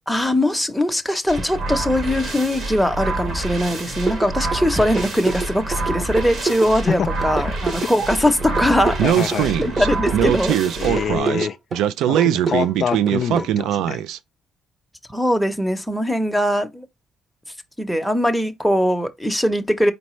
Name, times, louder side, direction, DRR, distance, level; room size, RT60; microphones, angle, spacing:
voice 1, 0.1-9.0 9.6-10.6 15.1-16.9 17.8-19.9, equal, ahead, 0.8 m, -21 dB
sound 1, 1.3-11.2, right 2 dB, 65° right, 1.8 m, -28 dB
sound 2, 4.1-13.5, right 4 dB, 35° right, 0.9 m, -27 dB
voice 2, 9.0-9.5 10.8-11.6 12.1-14.0, left 7 dB, 60° left, 0.4 m, -25 dB
Speech, 9.0-14.2, right 11 dB, 90° right, 0.3 m, -21 dB
4.3 x 4.1 x 3.1 m
cardioid pair, 90°, 0 cm